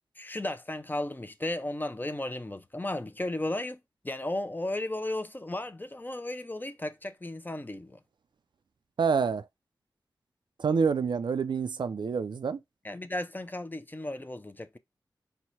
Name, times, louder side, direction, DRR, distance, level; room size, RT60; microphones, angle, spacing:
voice 1, 0.2-3.8 4.0-8.0 12.8-14.8, left 1 dB, 25° left, 0.6 m, -34 dB
voice 2, 9.0-9.5 10.6-12.6, right 5 dB, 75° right, 0.4 m, -27 dB
4.6 x 2.2 x 4.1 m
cardioid pair, 40°, 8 cm